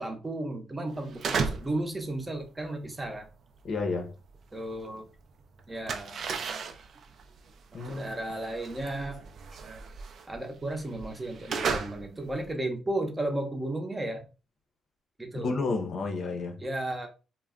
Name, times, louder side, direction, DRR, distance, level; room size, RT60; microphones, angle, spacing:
voice 1, 0.0-3.3 4.5-5.1 5.7-6.2 7.7-9.2 10.3-14.2 15.2-15.6 16.6-17.1, right 1 dB, 20° right, 0.7 m, -34 dB
sound 1, 1.0-1.8 2.1-5.1 5.3-12.5, right 5 dB, 60° right, 0.4 m, -35 dB
voice 2, 3.6-4.1 7.7-8.2 15.3-16.6, left 3 dB, 55° left, 0.6 m, -31 dB
2.2 x 2.1 x 3.6 m
cardioid pair, 90°, 0 cm